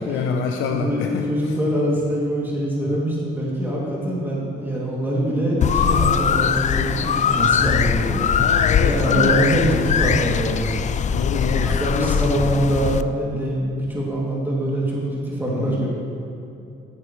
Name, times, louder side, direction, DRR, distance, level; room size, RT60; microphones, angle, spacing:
voice 1, 0.0-1.3 2.8-3.0 8.3-9.5 11.1-12.2 15.5-15.9, left 6 dB, 90° left, 3 dB, 0.7 m, -26 dB
voice 2, 0.7-8.3 8.8-10.7 11.5-15.9, right 1 dB, 10° right, -5 dB, 2.7 m, -24 dB
sound 1, 5.6-13.0, left 7 dB, 40° left, 0.4 m, -21 dB
14.0 x 9.8 x 3.2 m, 2.7 s
cardioid pair, 90°, 20 cm